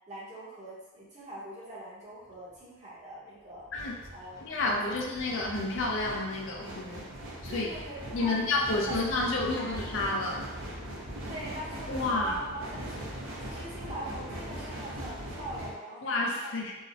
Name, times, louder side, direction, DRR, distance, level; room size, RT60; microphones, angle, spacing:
voice 1, 0.1-3.7 4.1-5.0 7.5-9.8 11.2-16.2, right 1 dB, 35° right, -8 dB, 0.7 m, -42 dB
sound 1, 2.3-2.5 3.5-15.7, right 1 dB, 80° right, 0.5 m, -41 dB
voice 2, 4.4-7.1 7.4-7.7 8.1-10.5 11.9-12.3 16.0-16.8, left 2 dB, 65° left, -1 dB, 0.4 m, -30 dB
2.7 x 2.0 x 2.5 m, 1.1 s
head